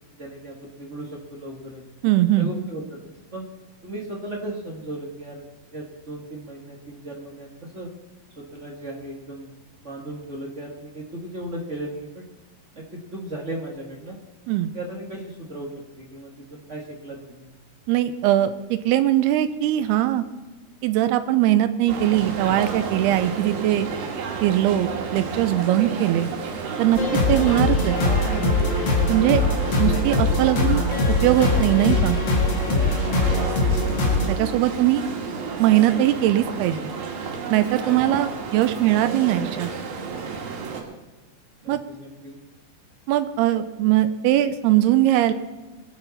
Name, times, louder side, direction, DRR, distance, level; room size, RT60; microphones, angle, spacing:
voice 1, 0.2-1.8 2.4-3.5 3.8-5.4 5.7-7.9 8.4-9.5 9.8-12.2 12.7-14.2 14.7-15.7 16.0-17.5 32.7-33.6 41.6-42.4, right 1 dB, 45° right, -1 dB, 0.9 m, -36 dB
voice 2, 2.0-2.5 14.5-14.7 17.9-20.2 20.8-23.9 24.4-26.3 26.8-27.0 27.3-28.0 29.1-29.4 29.8-30.9 31.2-32.2 34.3-35.0 35.6-36.8 37.5-39.7 41.7-41.8 43.1-45.3, right 13 dB, 90° right, 10 dB, 2.7 m, -20 dB
sound 1, 21.9-40.8, right 5 dB, 70° right, 3.8 m, -31 dB
sound 2, 26.9-34.3, left 2 dB, 50° left, 1.3 m, -22 dB
22.5 x 10.0 x 4.2 m, 1.2 s
omnidirectional pair, 4.6 m